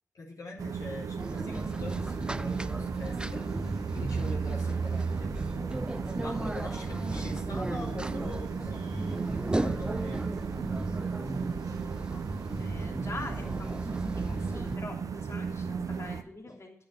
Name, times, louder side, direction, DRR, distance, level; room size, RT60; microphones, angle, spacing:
voice 1, 0.1-5.3 6.2-9.2 9.6-10.3 16.5-16.6, left 2 dB, 75° left, -3 dB, 2.7 m, -43 dB
sound 1, 0.6-16.2, right 5 dB, 70° right, 0.8 m, -35 dB
sound 2, 1.2-14.8, right 2 dB, 15° right, 0.4 m, -35 dB
voice 2, 12.6-16.9, left 2 dB, 50° left, 1 dB, 2.9 m, -44 dB
9.7 x 6.4 x 8.7 m, 0.68 s
supercardioid pair, 40°, 6 cm